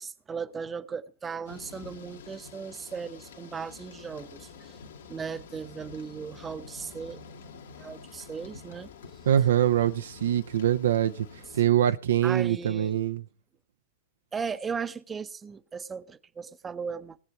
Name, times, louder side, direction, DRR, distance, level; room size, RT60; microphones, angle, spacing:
voice 1, 0.0-4.8 5.1-7.2 7.8-8.9 12.2-13.0 14.3-17.2, right 6 dB, 20° right, 0.8 m, -37 dB
Thunder / Rain, 1.4-11.6, left 5 dB, 65° left, 1.9 m, -48 dB
voice 2, 9.3-11.3 11.5-13.2, right 11 dB, 65° right, 0.6 m, -24 dB
19.0 x 7.8 x 6.0 m
figure-of-eight pair, 90°, 0 cm